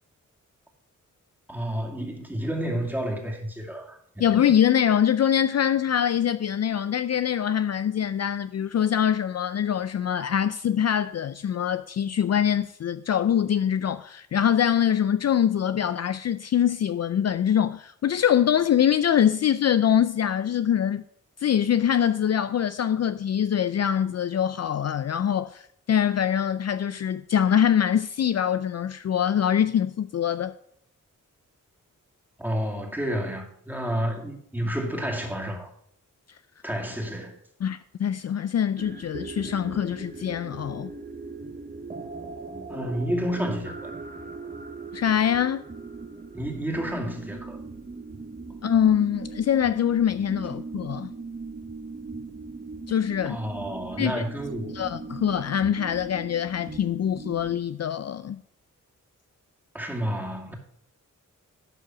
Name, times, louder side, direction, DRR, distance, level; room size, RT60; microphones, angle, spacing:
voice 1, 1.5-4.3 32.4-35.7 36.6-37.4 42.7-43.9 46.3-47.6 53.3-54.9 59.7-60.5, equal, 5° right, 2.4 m, -30 dB
voice 2, 4.2-21.0 21.4-30.5 36.3-36.4 37.6-40.9 44.9-45.6 48.6-51.1 52.9-53.4 54.0-54.2 54.7-58.4, left 9 dB, 55° left, 0.4 m, -24 dB
sound 1, 38.8-57.6, right 4 dB, 30° right, 1.1 m, -39 dB
12.0 x 4.7 x 6.1 m
cardioid pair, 65°, 32 cm